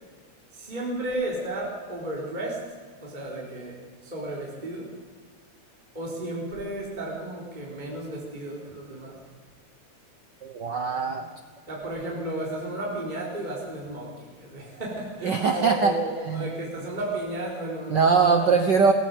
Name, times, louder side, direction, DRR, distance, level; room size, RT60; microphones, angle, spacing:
voice 1, 0.5-2.6 3.0-4.9 5.9-9.2 11.7-18.6, right 1 dB, 15° right, -4 dB, 3.7 m, -33 dB
voice 2, 10.4-11.3 15.2-15.9 16.3-16.4 17.9-18.9, right 5 dB, 70° right, 7 dB, 1.0 m, -21 dB
19.5 x 18.0 x 7.7 m, 1.5 s
omnidirectional pair, 3.4 m